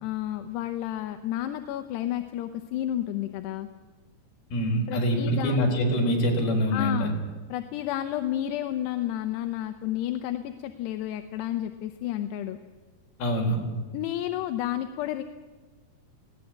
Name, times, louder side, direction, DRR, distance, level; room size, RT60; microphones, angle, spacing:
voice 1, 0.0-3.7 4.9-5.6 6.7-7.2 7.5-12.6 13.9-15.2, left 12 dB, 80° left, 7 dB, 2.9 m, -31 dB
voice 2, 4.5-7.1 13.2-13.6, equal, 60° left, 1 dB, 6.1 m, -24 dB
20.0 x 17.5 x 8.6 m, 1.3 s
omnidirectional pair, 5.0 m